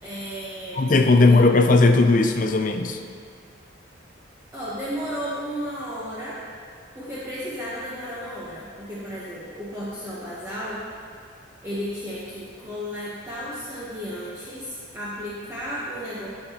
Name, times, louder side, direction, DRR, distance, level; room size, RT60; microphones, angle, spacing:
voice 1, 0.0-1.3 4.5-6.4 6.9-10.8 11.6-16.3, equal, 15° right, -10 dB, 1.1 m, -33 dB
voice 2, 0.8-3.0, left 3 dB, 40° left, 6 dB, 0.4 m, -17 dB
15.0 x 5.7 x 3.0 m, 2.2 s
head